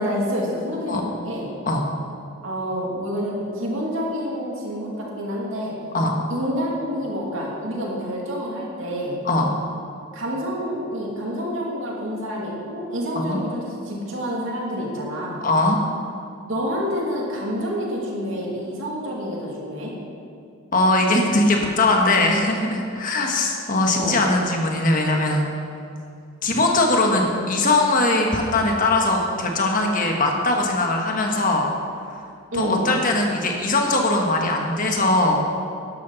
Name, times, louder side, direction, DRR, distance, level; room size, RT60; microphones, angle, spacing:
voice 1, 0.0-1.5 2.4-5.7 6.3-9.2 10.1-15.4 16.4-19.9 23.9-24.2 32.5-32.9, equal, 65° right, -3 dB, 2.6 m, -28 dB
voice 2, 15.4-15.8 20.7-25.5 26.4-31.7 32.5-35.4, left 2 dB, 40° left, 1 dB, 1.4 m, -20 dB
12.5 x 11.5 x 4.1 m, 2.5 s
head